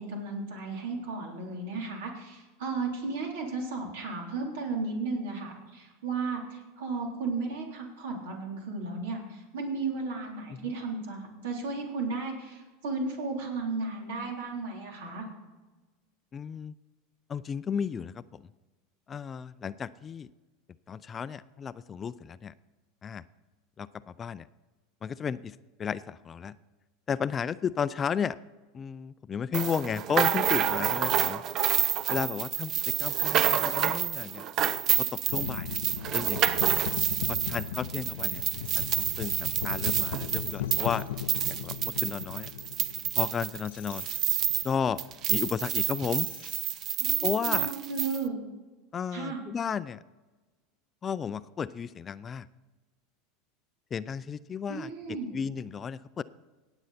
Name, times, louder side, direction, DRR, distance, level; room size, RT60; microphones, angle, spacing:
voice 1, 0.0-15.3 47.0-48.4 49.1-49.4 54.7-55.3, right 3 dB, 80° right, 0 dB, 3.7 m, -34 dB
voice 2, 16.3-16.7 17.3-18.4 19.1-20.3 20.9-22.5 23.0-23.2 23.8-24.5 25.0-26.6 27.1-28.4 28.7-31.4 32.1-34.4 35.0-35.8 36.1-36.7 37.3-38.4 38.7-41.1 41.5-42.5 43.2-44.1 44.6-45.0 45.3-46.3 47.2-47.7 48.9-50.0 51.0-52.5 53.9-54.9 55.3-56.2, left 7 dB, 30° left, 17 dB, 0.4 m, -33 dB
sound 1, 29.5-44.7 45.0-48.2, right 10 dB, 45° right, 0.6 m, -28 dB
sound 2, 35.3-46.9, left 9 dB, 85° left, 0.6 m, -38 dB
18.0 x 7.9 x 4.2 m, 1.2 s
hypercardioid pair, 105°, 0 cm